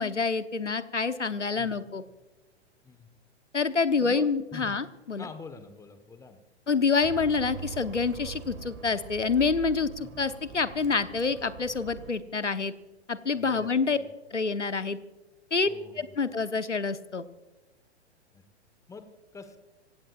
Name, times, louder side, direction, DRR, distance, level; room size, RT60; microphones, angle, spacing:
voice 1, 0.0-2.0 3.5-5.3 6.7-12.7 13.1-14.0 14.3-15.0 15.5-15.7 16.0-17.2, left 4 dB, 85° left, 12 dB, 1.1 m, -27 dB
voice 2, 2.8-3.2 4.0-4.8 5.2-6.4 6.7-6.8 10.0-10.2 13.3-14.1 15.6-16.3 18.3-18.4 18.9-19.0 19.3-19.6, left 4 dB, 10° left, 10 dB, 1.2 m, -46 dB
Bus, 7.0-12.1, right 7 dB, 30° right, 1.9 m, -43 dB
27.0 x 16.5 x 2.4 m, 1.1 s
figure-of-eight pair, 110°, 35 cm